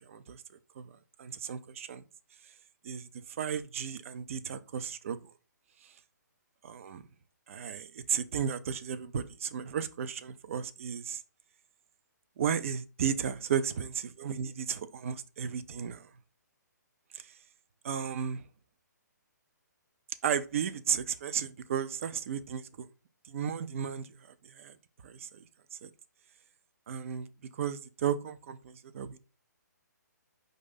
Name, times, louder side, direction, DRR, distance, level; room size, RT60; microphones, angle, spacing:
voice 1, 0.1-0.4 0.8-0.9 1.2-2.0 2.8-3.1 3.4-5.2 6.6-7.0 7.5-11.2 12.4-16.1 17.1-17.3 17.8-18.4 20.2-22.9 23.3-24.1 24.4-24.8 25.0-25.4 25.8-25.9 26.9-27.3 27.5-29.2, right 8 dB, 45° right, 0.5 m, -34 dB
4.8 x 2.6 x 4.0 m
figure-of-eight pair, 130°, 10 cm